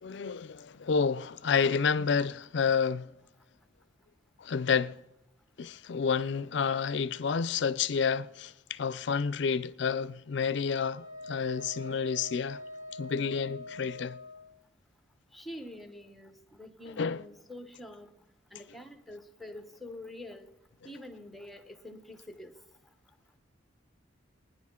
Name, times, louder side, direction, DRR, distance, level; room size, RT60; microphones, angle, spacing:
voice 1, 0.0-3.1 4.4-5.0 5.6-12.6 13.0-14.2 17.0-17.2, left 6 dB, 60° left, 0.4 m, -29 dB
Wind instrument woodwind instrument, 10.9-14.5, left 1 dB, 40° right, 2.0 m, -44 dB
voice 2, 15.3-18.1 18.5-20.5 20.8-22.6, left 1 dB, ahead, 0.9 m, -46 dB
24.5 x 10.0 x 3.7 m
head